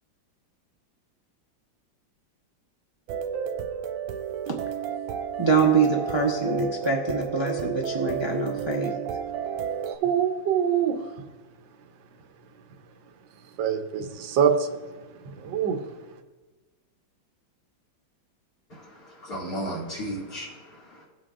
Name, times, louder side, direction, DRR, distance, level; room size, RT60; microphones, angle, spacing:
sound 1, 3.1-10.0, right 8 dB, 90° right, 1.4 m, -32 dB
voice 1, 5.4-9.0, right 4 dB, 25° right, -1 dB, 0.6 m, -24 dB
voice 2, 9.9-10.9 13.6-14.8 15.3-15.8, right 8 dB, 75° right, 5 dB, 1.5 m, -24 dB
voice 3, 18.7-21.0, right 1 dB, 50° left, -10 dB, 2.9 m, -35 dB
17.5 x 7.7 x 2.5 m, 1.2 s
omnidirectional pair, 2.1 m